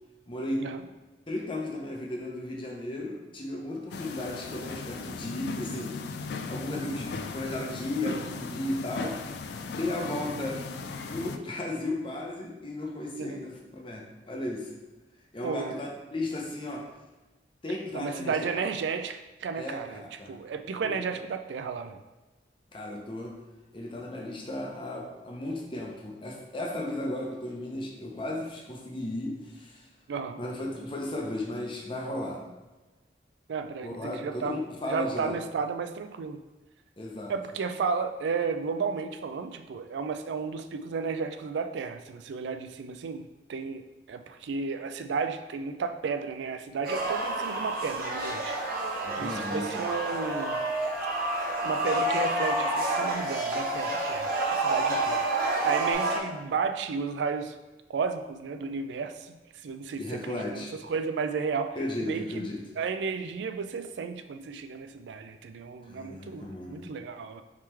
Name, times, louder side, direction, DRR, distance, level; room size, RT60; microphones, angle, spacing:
voice 1, 0.3-0.6 1.3-5.9 6.2-9.2 9.7-10.6 11.0-14.7 15.3-16.8 17.6-18.4 19.6-19.8 20.2-20.4 20.8-21.0 22.7-23.3 23.7-29.8 30.4-32.4 33.8-35.3 37.0-37.3 49.0-49.7 60.0-60.7 61.8-62.6 65.8-66.9, left 1 dB, 30° left, -1 dB, 0.7 m, -35 dB
sound 1, 3.9-11.4, left 4 dB, 65° left, 0.3 m, -37 dB
voice 2, 17.9-22.0 30.1-30.4 33.5-34.6 34.8-36.4 37.3-43.8 44.1-48.6 49.2-50.6 51.6-55.2 55.6-57.5 57.9-62.5 62.8-67.4, right 5 dB, 80° right, 9 dB, 0.3 m, -33 dB
sound 2, 46.8-56.2, right 2 dB, 55° right, 0.7 m, -30 dB
sound 3, 49.9-55.9, right 1 dB, 5° right, 0.6 m, -32 dB
3.6 x 3.1 x 4.4 m, 1.1 s
head